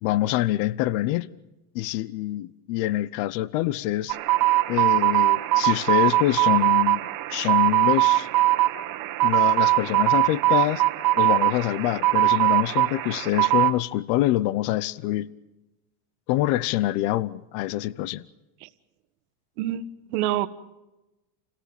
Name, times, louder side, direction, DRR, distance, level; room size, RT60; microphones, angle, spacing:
voice 1, 0.0-1.3 1.7-4.2 4.7-7.0 7.3-8.3 9.2-10.8 11.2-15.3 16.3-18.3, left 15 dB, 60° left, 0.9 m, -25 dB
sound 1, 4.1-13.7, right 18 dB, 45° right, 1.4 m, -21 dB
voice 2, 19.6-20.5, right 13 dB, 80° right, 1.5 m, -27 dB
29.0 x 18.0 x 7.1 m
supercardioid pair, 145°, 45 cm